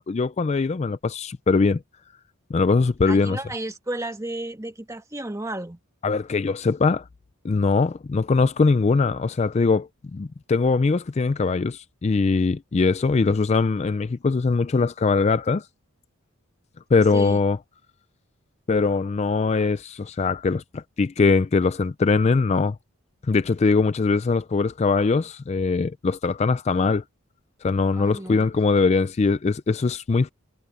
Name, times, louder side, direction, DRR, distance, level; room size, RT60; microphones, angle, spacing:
voice 1, 0.0-1.8 2.5-3.4 6.0-7.0 7.4-15.7 16.9-17.6 18.7-22.8 23.3-27.0 27.6-30.3, left 4 dB, 30° left, 0.3 m, -21 dB
voice 2, 3.0-5.8 17.1-17.4 27.9-28.5, right 1 dB, 15° right, 1.4 m, -33 dB
head